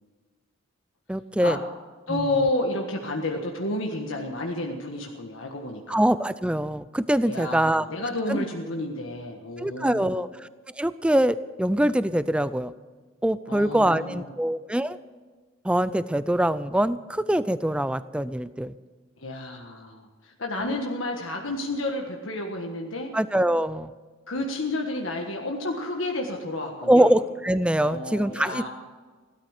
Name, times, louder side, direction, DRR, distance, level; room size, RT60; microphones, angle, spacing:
voice 1, 1.1-1.6 2.1-2.3 5.9-7.8 8.3-8.4 9.6-10.5 10.8-12.7 13.2-15.0 15.6-18.7 20.6-20.8 23.1-23.9 26.9-28.7, right 1 dB, 5° right, 15 dB, 0.4 m, -23 dB
voice 2, 2.1-6.0 7.3-10.2 13.5-14.3 19.2-23.1 24.3-27.1 27.8-28.7, left 2 dB, 75° left, 1 dB, 1.5 m, -31 dB
16.5 x 13.0 x 6.6 m, 1.4 s
head